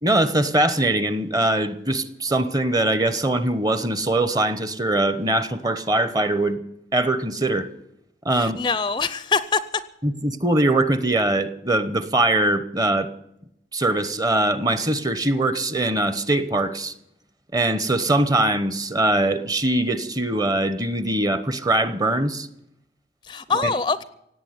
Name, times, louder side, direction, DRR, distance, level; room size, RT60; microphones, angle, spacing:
voice 1, 0.0-6.6 6.9-7.7 8.2-8.6 10.0-13.1 13.7-16.9 17.5-22.5 23.6-23.7, right 1 dB, 20° right, 13 dB, 1.0 m, -22 dB
voice 2, 8.3-9.6 23.2-24.0, left 5 dB, 25° left, 15 dB, 0.5 m, -24 dB
17.5 x 8.8 x 9.5 m, 0.80 s
head